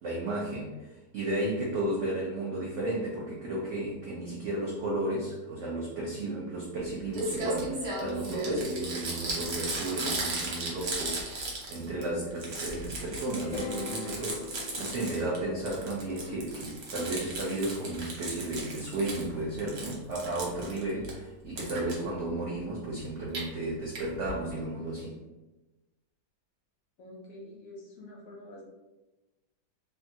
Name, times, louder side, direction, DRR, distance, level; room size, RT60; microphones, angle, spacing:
voice 1, 0.0-25.2, right 1 dB, 80° right, -4 dB, 0.6 m, -34 dB
Crumpling crinkling, 6.8-6.9 7.1-12.0 12.3-15.4 15.7-19.3 19.6-21.1 21.6-21.9 23.1-23.4 23.9-24.0 24.3-24.4 24.6-24.7, right 2 dB, 65° right, 1.1 m, -35 dB
sound 1, 13.4-17.6, left 4 dB, 85° left, 1.2 m, -42 dB
voice 2, 27.0-28.7, left 1 dB, 70° left, -3 dB, 0.8 m, -47 dB
2.8 x 2.3 x 2.6 m, 1.1 s
omnidirectional pair, 1.8 m